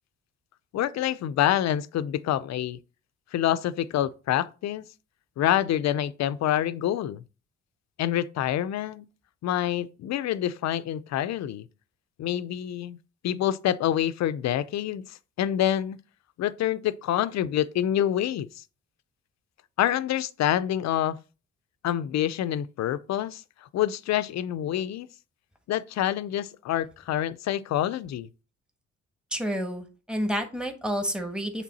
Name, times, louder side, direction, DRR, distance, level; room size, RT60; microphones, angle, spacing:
voice 1, 0.7-2.8 3.3-4.9 5.4-7.2 8.0-9.1 9.4-11.6 12.2-13.0 13.2-16.0 16.4-18.5 19.8-21.2 21.8-23.4 23.7-25.1 25.7-28.3, left 11 dB, 65° left, 0.5 m, -27 dB
voice 2, 29.3-31.6, equal, 5° right, 1.2 m, -30 dB
7.4 x 3.4 x 4.1 m
cardioid pair, 90°, 30 cm